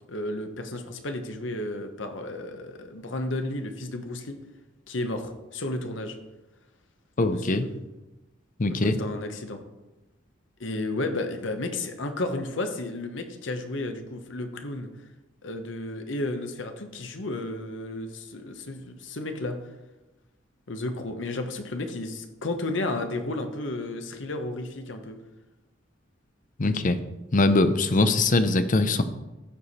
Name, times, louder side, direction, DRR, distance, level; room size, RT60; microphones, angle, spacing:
voice 1, 0.1-4.4 4.9-6.2 7.3-7.7 8.8-9.6 10.6-14.9 15.4-19.6 20.7-25.2, left 2 dB, 70° left, 6 dB, 1.1 m, -32 dB
voice 2, 7.2-7.7 8.6-9.0 26.6-27.0 27.3-29.0, left 2 dB, 45° left, 10 dB, 0.7 m, -22 dB
14.5 x 4.9 x 4.2 m, 1.0 s
head